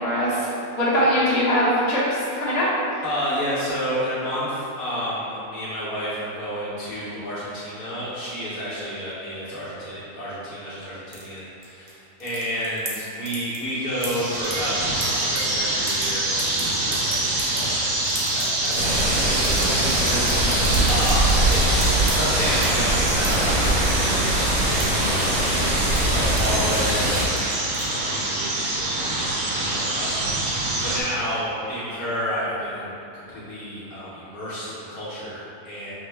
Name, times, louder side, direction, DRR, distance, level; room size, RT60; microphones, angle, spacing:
voice 1, 0.0-2.7 20.2-20.8, equal, 45° left, -10 dB, 1.2 m, -23 dB
voice 2, 3.0-24.5 24.7-27.5 27.9-35.9, equal, 65° left, -10 dB, 1.3 m, -31 dB
sound 1, 11.1-11.9 12.2-13.0 13.3-13.7 14.0-15.4 15.7-16.0 16.4-22.1 22.5-22.7 23.1-24.0 24.3-25.6 25.8-26.5 26.7-26.9 27.1-28.1, right 3 dB, 50° right, 0.7 m, -35 dB
sound 2, 13.8-31.0, right 2 dB, 70° right, 1.2 m, -25 dB
sound 3, 18.7-27.3, right 1 dB, 85° right, 1.7 m, -22 dB
5.9 x 2.0 x 3.3 m, 2.9 s
omnidirectional pair, 1.7 m